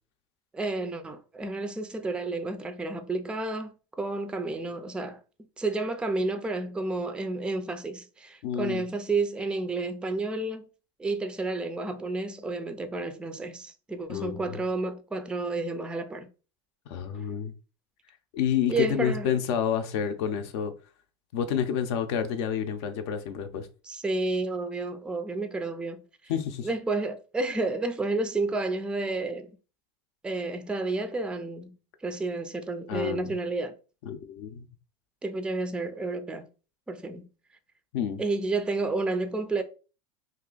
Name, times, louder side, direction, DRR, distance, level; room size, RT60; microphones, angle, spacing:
voice 1, 0.5-3.7 4.0-5.2 5.6-10.7 11.0-16.3 18.7-19.3 23.8-26.0 26.6-29.6 30.2-31.7 32.0-33.8 35.2-36.5 36.9-37.3 38.2-39.6, right 2 dB, 5° right, 0.4 m, -31 dB
voice 2, 8.4-8.8 14.1-14.6 16.9-17.5 18.3-20.7 21.3-23.7 26.3-26.7 32.9-33.3 34.1-34.7 37.9-38.2, left 8 dB, 70° left, 0.6 m, -29 dB
2.8 x 2.5 x 3.8 m
supercardioid pair, 130°, 14 cm